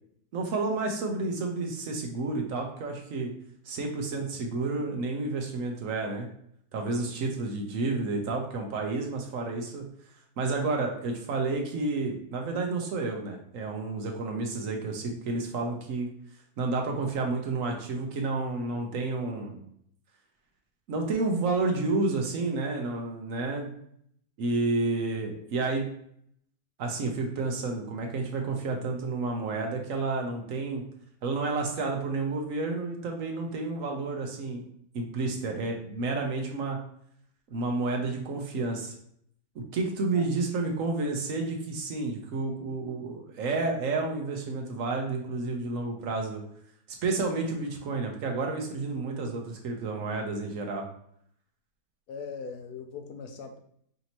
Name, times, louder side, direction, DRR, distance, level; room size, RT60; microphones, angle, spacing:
voice 1, 0.3-3.3 3.6-6.3 6.7-9.8 10.4-16.1 16.6-19.6 20.9-23.7 24.4-25.9 26.8-30.8 31.2-34.6 34.9-36.8 37.5-38.9 39.5-46.4 47.0-50.9, right 3 dB, 65° right, 2 dB, 1.0 m, -30 dB
voice 2, 52.1-53.6, left 5 dB, 80° left, 6 dB, 1.2 m, -40 dB
5.2 x 2.6 x 2.9 m, 0.68 s
omnidirectional pair, 1.7 m